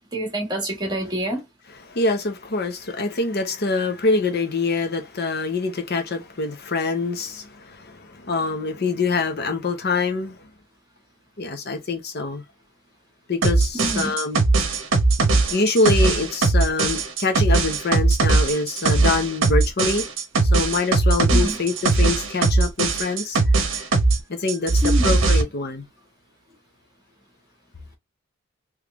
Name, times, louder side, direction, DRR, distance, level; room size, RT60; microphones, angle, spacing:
voice 1, 0.1-1.4 13.7-14.2 21.3-21.6 24.8-25.2, equal, 20° right, 1.4 m, -26 dB
voice 2, 1.9-10.5 11.4-12.4 13.3-14.4 15.5-20.0 20.5-23.4 23.7-23.9 24.3-25.8, left 3 dB, 50° left, 0.8 m, -25 dB
sound 1, 13.4-24.2 24.5-25.4, right 3 dB, 65° right, 0.8 m, -19 dB
3.4 x 3.2 x 2.4 m
head